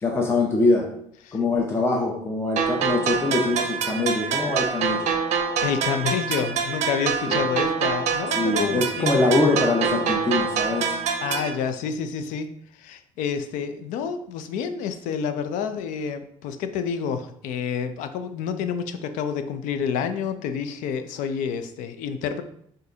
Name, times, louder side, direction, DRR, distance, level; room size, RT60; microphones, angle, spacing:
voice 1, 0.0-0.9 1.3-5.1 7.3-7.4 8.4-11.0, left 2 dB, 20° left, 0 dB, 0.6 m, -23 dB
sound 1, 2.6-11.6, right 6 dB, 60° right, 0.5 m, -26 dB
voice 2, 5.6-9.1 11.2-12.5 12.8-22.4, left 7 dB, 85° left, 9 dB, 0.4 m, -29 dB
6.1 x 2.6 x 2.7 m, 0.69 s
cardioid pair, 130°, 13 cm